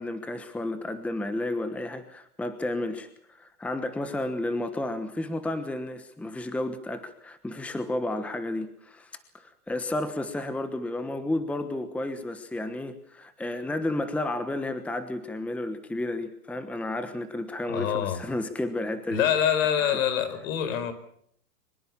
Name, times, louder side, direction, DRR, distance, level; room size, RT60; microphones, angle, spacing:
voice 1, 0.0-19.2, left 1 dB, 5° left, 10 dB, 1.2 m, -32 dB
voice 2, 17.7-18.2 19.1-20.9, left 9 dB, 60° left, 12 dB, 5.0 m, -25 dB
24.0 x 21.0 x 7.3 m, 0.67 s
supercardioid pair, 145°, 45 cm